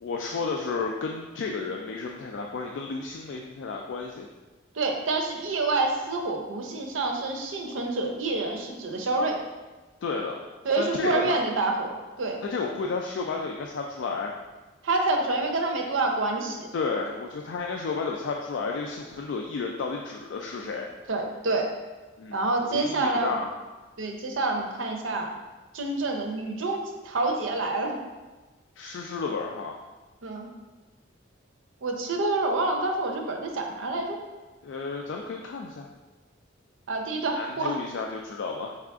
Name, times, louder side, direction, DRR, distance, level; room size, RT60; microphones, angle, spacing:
voice 1, 0.0-4.3 10.0-10.4 10.8-11.4 12.4-14.3 16.7-20.9 22.2-23.5 28.8-29.7 34.6-35.9 37.3-38.8, left 4 dB, 70° left, 1 dB, 0.3 m, -32 dB
voice 2, 4.7-9.4 10.6-12.4 14.8-16.7 21.1-21.7 22.3-23.4 24.0-25.3 25.7-28.0 30.2-30.5 31.8-34.2 36.9-37.8, right 2 dB, 85° right, 2 dB, 0.6 m, -27 dB
4.6 x 2.4 x 3.5 m, 1.2 s
head